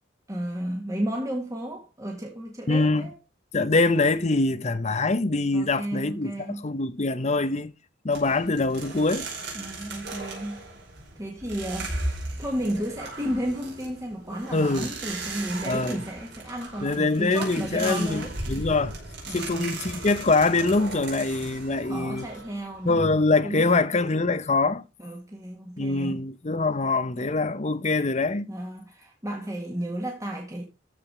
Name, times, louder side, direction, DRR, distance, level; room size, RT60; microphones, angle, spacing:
voice 1, 0.3-3.2 5.5-6.7 9.5-10.6 11.2-11.9 12.4-18.3 19.3-19.7 21.9-23.0 23.4-23.7 25.0-26.2 28.5-30.6, equal, 20° right, 1.9 m, -33 dB
voice 2, 2.7-3.1 3.5-7.7 8.0-9.3 14.5-14.9 15.6-16.0 16.8-18.9 19.3-22.3 22.8-24.8 25.8-28.5, left 3 dB, 35° left, 0.8 m, -24 dB
sound 1, 8.1-23.1, right 2 dB, 65° right, 5.2 m, -37 dB
14.0 x 5.0 x 5.0 m
head